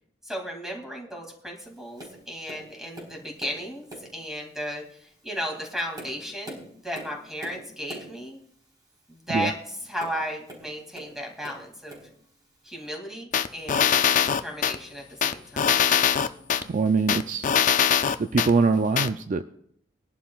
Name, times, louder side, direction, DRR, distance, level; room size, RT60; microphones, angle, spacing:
voice 1, 0.3-3.8 4.1-4.8 5.2-8.4 9.1-9.6 9.8-12.0 12.6-15.8, equal, 5° right, 1 dB, 2.4 m, -35 dB
Tap, 2.0-2.2 2.5-3.6 3.9-4.2 4.9-5.0 5.6-8.2 9.9-11.1 11.4-12.1 12.9-13.0, right 1 dB, 25° right, 4.1 m, -43 dB
sound 1, 13.3-14.8 15.2-16.6 17.1-18.5 19.0-19.1, left 8 dB, 45° left, 0.4 m, -22 dB
voice 2, 16.7-17.5 18.2-19.4, right 4 dB, 45° right, 9 dB, 0.4 m, -23 dB
20.5 x 11.5 x 2.4 m, 0.67 s
head